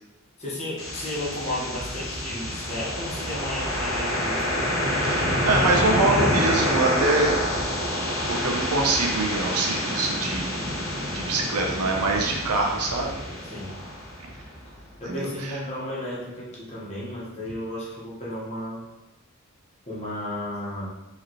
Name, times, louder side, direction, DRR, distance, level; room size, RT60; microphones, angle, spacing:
voice 1, 0.4-4.4 5.6-6.3 13.4-13.8 15.0-18.8 19.9-20.9, left 1 dB, 30° left, -7 dB, 1.3 m, -33 dB
sound 1, 0.8-14.7, left 1 dB, 60° left, 1.1 m, -27 dB
voice 2, 5.0-7.8 8.3-10.5 11.1-13.1 15.1-15.6, right 2 dB, 90° right, 1 dB, 0.7 m, -25 dB
4.9 x 3.2 x 3.0 m, 0.99 s
head